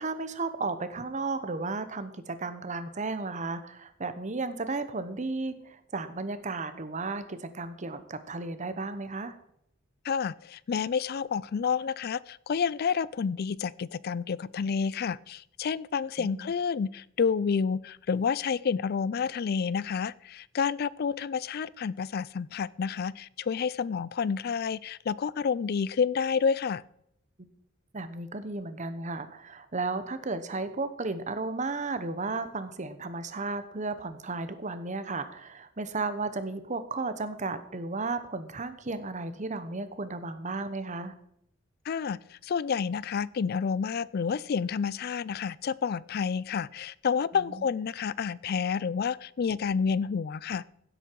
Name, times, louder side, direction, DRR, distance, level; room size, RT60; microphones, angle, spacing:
voice 1, 0.0-9.4 16.2-16.5 27.4-27.5 27.9-41.1 47.3-47.6, right 3 dB, 40° right, 11 dB, 1.0 m, -34 dB
voice 2, 10.0-26.8 41.9-50.7, left 6 dB, 50° left, 21 dB, 0.4 m, -29 dB
16.0 x 8.0 x 4.6 m, 0.73 s
head